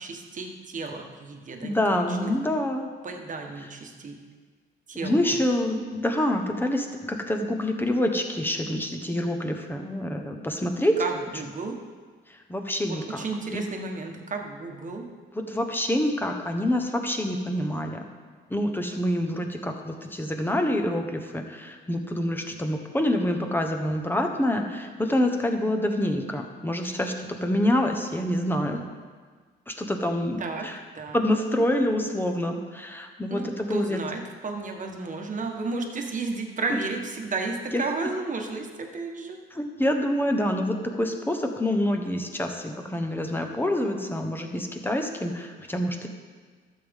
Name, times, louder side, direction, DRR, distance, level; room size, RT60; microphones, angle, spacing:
voice 1, 0.0-2.3 3.0-4.2 4.9-5.3 11.0-11.8 12.8-15.1 30.4-30.7 30.9-31.3 33.3-39.4, right 3 dB, 40° right, 3 dB, 1.3 m, -33 dB
voice 2, 1.6-2.9 5.0-11.0 12.5-13.2 13.5-13.6 15.5-18.0 18.5-28.8 29.7-30.8 31.1-34.0 36.7-36.8 37.7-37.8 39.5-46.1, left 1 dB, 10° left, 4 dB, 1.1 m, -26 dB
12.5 x 7.5 x 3.7 m, 1.5 s
cardioid pair, 90°, 20 cm